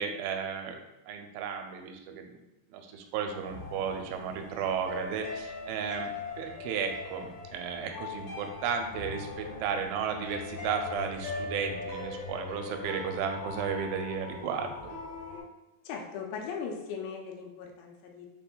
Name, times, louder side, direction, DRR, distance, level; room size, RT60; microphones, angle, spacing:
voice 1, 0.0-2.4 2.7-14.9, right 7 dB, 80° right, 5 dB, 2.2 m, -34 dB
sound 1, 3.3-15.4, left 3 dB, 50° left, 1.8 m, -40 dB
voice 2, 15.8-18.3, left 6 dB, 80° left, 1 dB, 2.2 m, -38 dB
6.1 x 3.4 x 2.2 m, 0.93 s
omnidirectional pair, 4.5 m